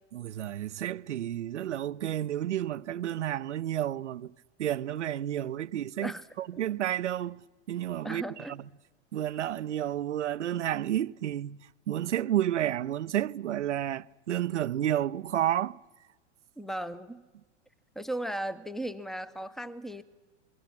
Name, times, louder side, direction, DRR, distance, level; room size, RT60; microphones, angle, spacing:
voice 1, 0.1-4.3 4.6-6.1 6.4-8.6 9.1-11.6 11.9-15.8, right 11 dB, 80° right, 0.7 m, -31 dB
voice 2, 8.0-8.5 16.6-17.2 17.9-20.0, right 1 dB, ahead, 1.0 m, -36 dB
27.0 x 22.0 x 6.0 m
hypercardioid pair, 100°, 35 cm